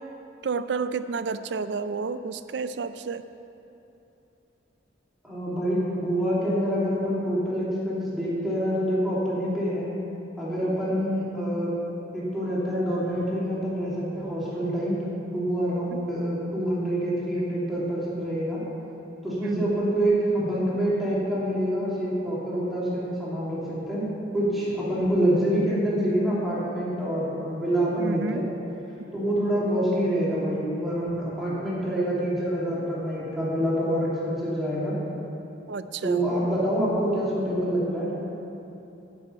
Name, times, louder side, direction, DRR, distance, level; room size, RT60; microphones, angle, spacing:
voice 1, 0.4-3.2 19.4-19.7 28.0-28.4 35.7-36.2, right 4 dB, 70° right, 12 dB, 0.4 m, -30 dB
voice 2, 5.2-9.9 10.4-11.8 12.1-15.0 15.3-18.6 19.2-24.1 24.3-28.5 29.1-35.0 36.0-38.1, equal, ahead, -9 dB, 2.7 m, -26 dB
9.7 x 6.5 x 8.8 m, 3.0 s
head